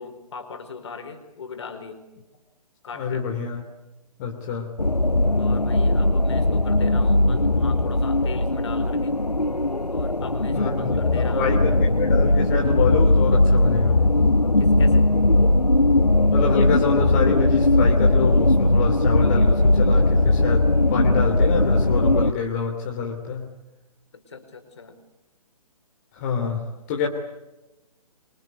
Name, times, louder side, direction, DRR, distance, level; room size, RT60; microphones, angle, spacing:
voice 1, 0.0-2.0 2.8-3.2 5.4-9.2 9.9-11.6 14.6-15.1 24.1-25.0, left 5 dB, 45° left, 7 dB, 4.8 m, -38 dB
voice 2, 2.9-3.6 4.2-4.7 10.5-14.1 16.3-23.5 26.1-27.1, left 6 dB, 25° left, 1 dB, 2.9 m, -27 dB
sound 1, 4.8-22.3, left 2 dB, 85° left, 1.3 m, -19 dB
27.0 x 24.5 x 8.2 m, 1.0 s
figure-of-eight pair, 135°, 20 cm